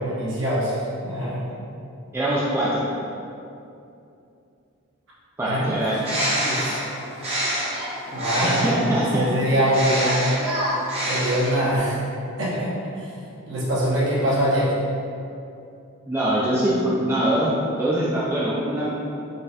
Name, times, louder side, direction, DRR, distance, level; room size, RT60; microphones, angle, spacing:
voice 1, 0.0-1.4 5.5-5.7 6.4-6.6 8.1-10.3 11.1-12.0 12.4-13.1 13.5-14.8, equal, 65° right, -8 dB, 1.1 m, -23 dB
voice 2, 2.1-2.8 5.4-6.3 8.4-9.2 16.1-17.5 17.8-18.9, right 1 dB, 10° right, -8 dB, 0.4 m, -23 dB
Bird, 5.8-8.9 9.6-11.8, equal, 30° right, 0.9 m, -27 dB
4.0 x 3.9 x 2.5 m, 2.6 s
head